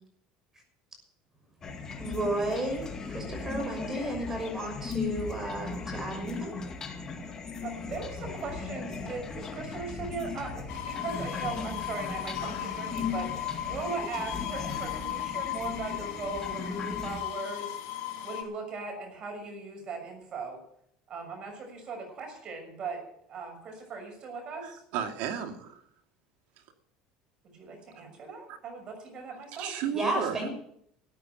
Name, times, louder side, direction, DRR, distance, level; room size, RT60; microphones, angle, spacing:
sound 1, 1.6-17.2, left 5 dB, 25° left, 2.2 m, -38 dB
voice 1, 2.0-6.5 29.9-30.5, right 1 dB, 20° right, 3 dB, 6.1 m, -32 dB
voice 2, 7.6-17.8 18.2-20.6 21.1-23.0 23.3-24.8 27.4-29.7, right 4 dB, 40° right, 4 dB, 6.3 m, -39 dB
sound 2, 10.7-18.4, left 12 dB, 85° left, 3.2 m, -36 dB
voice 3, 24.6-25.8 28.5-28.6 29.6-30.5, right 8 dB, 70° right, 3 dB, 2.4 m, -34 dB
14.0 x 8.8 x 9.3 m, 0.70 s
cardioid pair, 130°, 2 cm